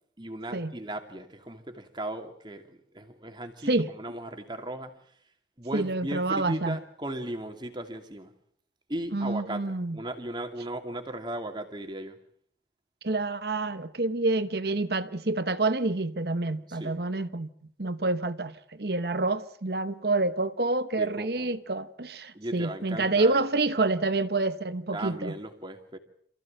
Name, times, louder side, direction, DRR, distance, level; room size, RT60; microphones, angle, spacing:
voice 1, 0.2-2.6 2.9-5.0 5.6-8.3 8.9-12.2 16.7-17.0 21.0-21.5 22.3-23.4 24.9-26.0, right 1 dB, 25° right, 2.6 m, -37 dB
voice 2, 5.7-6.8 9.1-10.0 13.0-17.5 17.8-25.3, right 2 dB, 60° right, 1.1 m, -28 dB
27.0 x 15.5 x 8.9 m
head